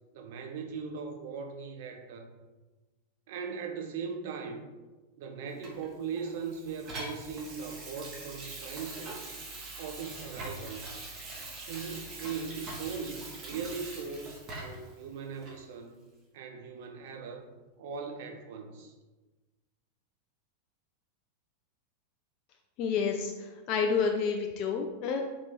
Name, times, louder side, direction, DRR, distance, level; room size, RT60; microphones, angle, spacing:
voice 1, 0.1-2.3 3.3-4.6 5.2-9.3 9.8-10.8 11.7-16.0 16.3-17.4 17.8-18.9, right 5 dB, 50° right, 4 dB, 0.6 m, -39 dB
Water tap faucet / Sink (filling or washing), 5.6-14.9 15.4-15.6, right 2 dB, 35° right, 1.0 m, -43 dB
voice 2, 22.8-25.2, left 5 dB, 40° left, 3 dB, 0.3 m, -29 dB
4.2 x 2.9 x 3.5 m, 1.2 s
figure-of-eight pair, 90°, 0 cm